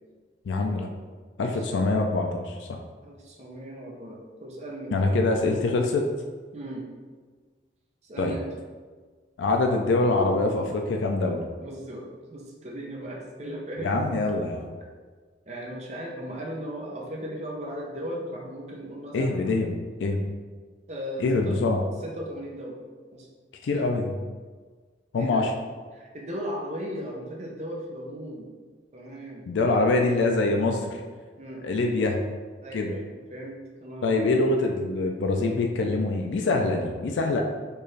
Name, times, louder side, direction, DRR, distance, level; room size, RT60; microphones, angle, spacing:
voice 1, 0.5-0.9 1.4-2.8 4.9-6.1 8.2-8.3 9.4-11.5 13.8-14.7 19.1-20.2 21.2-21.8 23.6-24.1 25.1-25.5 29.5-31.0 31.6-32.2 32.7-32.9 34.0-37.4, left 2 dB, 85° left, 2 dB, 0.4 m, -24 dB
voice 2, 1.4-1.8 3.0-5.3 6.5-6.8 8.0-8.5 11.6-14.1 15.5-19.5 20.9-21.6 22.0-22.8 23.1-23.3 23.7-23.9 25.2-25.4 25.9-28.5 28.9-29.9 31.4-31.6 32.6-33.0 33.3-34.4, equal, 35° right, -1 dB, 0.6 m, -37 dB
4.5 x 2.5 x 3.2 m, 1.5 s
head